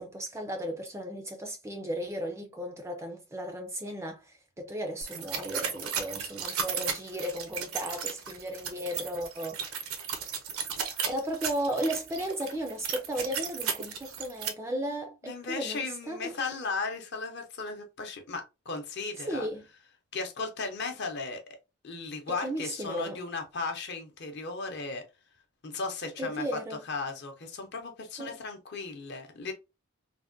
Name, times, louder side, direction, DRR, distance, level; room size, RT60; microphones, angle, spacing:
voice 1, 0.0-9.6 11.1-16.5 19.2-19.6 22.3-23.2 26.2-26.8 28.2-28.4, equal, 15° right, 0.3 m, -35 dB
sound 1, 5.0-14.5, right 7 dB, 75° right, 0.6 m, -35 dB
voice 2, 15.2-19.5 20.1-21.4 21.8-25.0 25.6-26.6 26.9-29.5, left 4 dB, 50° left, 0.6 m, -36 dB
3.3 x 2.1 x 2.5 m
head